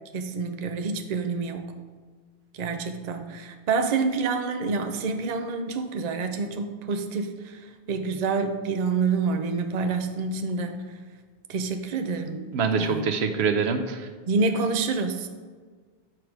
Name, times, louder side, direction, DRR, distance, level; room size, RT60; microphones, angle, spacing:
voice 1, 0.1-1.7 2.5-10.9 11.5-13.1 14.3-15.3, right 4 dB, 50° right, 6 dB, 0.6 m, -28 dB
voice 2, 12.5-14.1, right 5 dB, 80° right, 8 dB, 0.9 m, -25 dB
7.4 x 4.7 x 4.9 m, 1.5 s
omnidirectional pair, 1.1 m